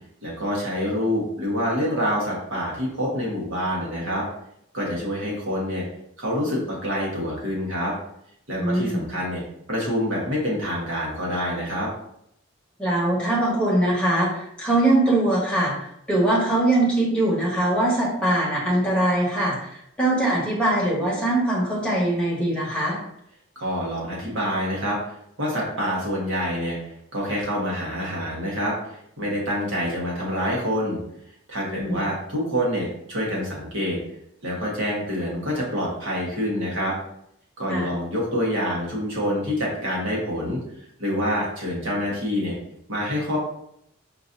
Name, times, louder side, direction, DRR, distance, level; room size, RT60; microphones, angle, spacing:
voice 1, 0.2-4.2 4.7-5.8 6.2-7.9 8.5-9.4 9.7-11.9 23.5-25.0 25.4-26.8 27.1-31.0 31.5-34.0 34.4-36.9 37.6-40.6 41.0-42.6 42.9-43.4, equal, 70° right, -4 dB, 1.3 m, -26 dB
voice 2, 8.6-9.1 12.8-19.7 20.0-23.0 31.6-32.0 37.7-37.9, right 1 dB, 5° left, -7 dB, 1.2 m, -22 dB
5.1 x 2.7 x 2.6 m, 0.74 s
head